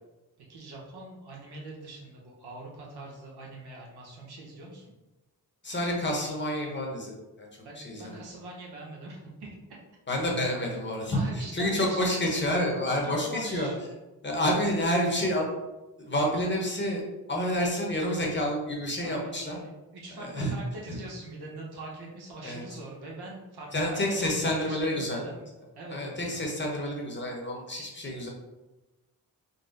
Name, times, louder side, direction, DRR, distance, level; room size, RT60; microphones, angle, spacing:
voice 1, 0.5-4.9 7.6-9.6 11.1-12.4 13.0-13.8 19.0-25.5 25.7-26.4, right 2 dB, 80° right, -3 dB, 1.1 m, -43 dB
voice 2, 5.6-7.5 7.8-8.2 10.1-13.7 14.2-15.5 16.0-17.0 17.3-19.6 20.2-20.6 20.9-21.0 22.4-22.6 23.7-25.2 25.9-28.3, equal, 30° left, -1 dB, 1.0 m, -29 dB
4.0 x 2.1 x 3.9 m, 1.1 s
cardioid pair, 75°, 38 cm